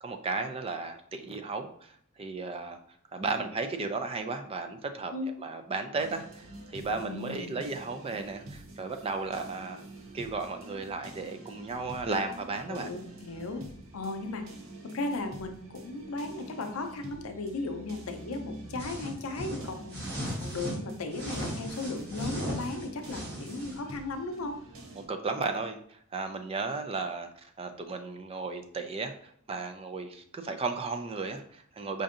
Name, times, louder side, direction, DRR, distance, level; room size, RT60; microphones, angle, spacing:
voice 1, 0.0-1.9 2.2-2.8 3.1-5.1 5.4-6.4 6.7-9.8 10.1-12.9 25.0-27.3 27.6-32.0, right 3 dB, 25° right, 6 dB, 0.3 m, -34 dB
sound 1, 6.0-25.1, right 2 dB, 70° right, 0.7 m, -47 dB
voice 2, 6.9-7.6 12.7-13.6 13.9-14.4 14.8-20.0 20.4-24.6, left 2 dB, 80° left, 6 dB, 0.6 m, -36 dB
sound 2, 18.8-20.8 21.1-23.8, equal, 50° right, 1.4 m, -37 dB
5.0 x 2.6 x 2.5 m, 0.65 s
head